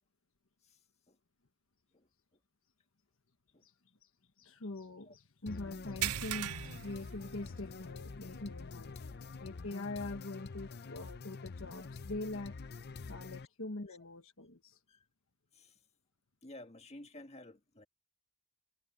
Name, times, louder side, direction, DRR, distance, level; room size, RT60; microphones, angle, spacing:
voice 1, 4.4-12.5 13.1-14.8, left 2 dB, 60° left, 1.3 m, -44 dB
sound 1, 5.5-13.5, left 4 dB, 45° left, 0.6 m, -47 dB
sound 2, 6.0-7.9 8.2-8.5 8.9-9.0 10.7-10.8, right 13 dB, 75° right, 0.5 m, -39 dB
voice 2, 16.4-17.9, left 1 dB, 30° left, 1.8 m, -53 dB
head